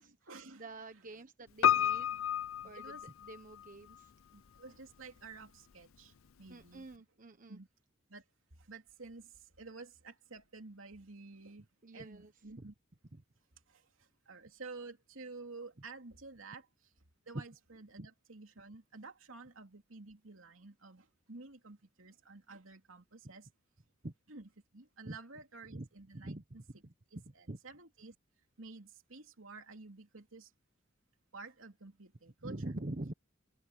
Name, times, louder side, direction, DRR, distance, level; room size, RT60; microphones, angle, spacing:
voice 1, 0.0-1.3 2.6-3.1 4.3-7.0 7.5-7.7 8.1-8.2 8.6-11.7 11.9-12.7 13.7-16.9 17.3-23.5 24.3-26.8 27.1-28.1 28.6-30.5 31.3-32.7, right 3 dB, 80° right, 3.0 m, -52 dB
voice 2, 0.6-2.2 2.6-4.1 6.5-7.6 11.8-12.3 12.6-12.7 13.1-13.2 17.3-17.4 18.0-18.1 24.0-24.1 25.0-25.2 25.7-25.9 26.1-26.6 26.8-27.6 32.4-33.1, right 1 dB, 40° right, 1.2 m, -45 dB
Piano, 1.6-3.7 3.9-4.0, left 10 dB, 80° left, 0.6 m, -30 dB
head